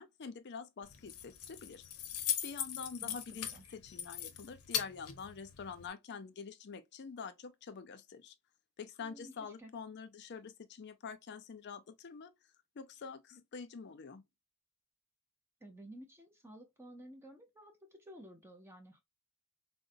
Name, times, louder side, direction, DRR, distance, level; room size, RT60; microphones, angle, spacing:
voice 1, 0.0-1.8 2.4-8.3 8.8-12.3 12.8-14.2, left 5 dB, 50° left, 0.4 m, -46 dB
Keys jangling, 0.8-5.9, left 10 dB, 90° left, 0.7 m, -40 dB
voice 2, 3.0-3.8 9.0-9.7 15.6-19.0, right 1 dB, 10° right, 0.5 m, -54 dB
3.8 x 2.1 x 2.5 m
head